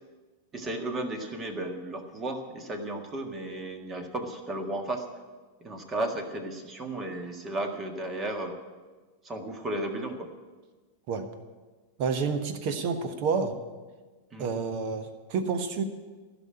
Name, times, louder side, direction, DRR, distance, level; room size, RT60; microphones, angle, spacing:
voice 1, 0.5-5.0 5.6-8.6 9.2-10.3 14.3-14.5, right 1 dB, 20° right, 5 dB, 1.7 m, -34 dB
voice 2, 12.0-13.5 14.4-15.8, right 5 dB, 45° right, 8 dB, 1.3 m, -29 dB
16.0 x 6.3 x 9.8 m, 1.3 s
figure-of-eight pair, 90°, 0 cm